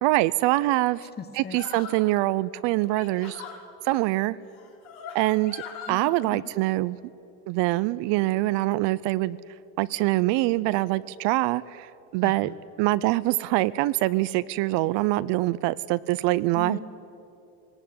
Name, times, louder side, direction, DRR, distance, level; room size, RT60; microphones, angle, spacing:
voice 1, 0.0-1.1 1.4-3.4 3.8-4.4 5.1-5.6 5.9-7.0 7.5-9.4 9.8-12.5 12.8-16.8, right 18 dB, 65° right, 17 dB, 0.6 m, -24 dB
voice 2, 1.2-1.6 5.9-6.4 12.2-12.5 16.5-16.8, left 6 dB, 20° left, 10 dB, 1.2 m, -38 dB
sound 1, 1.5-2.1 2.8-3.6 4.5-6.0, left 7 dB, 70° left, 4.0 m, -41 dB
20.0 x 18.0 x 9.5 m, 2.6 s
cardioid pair, 135°, 48 cm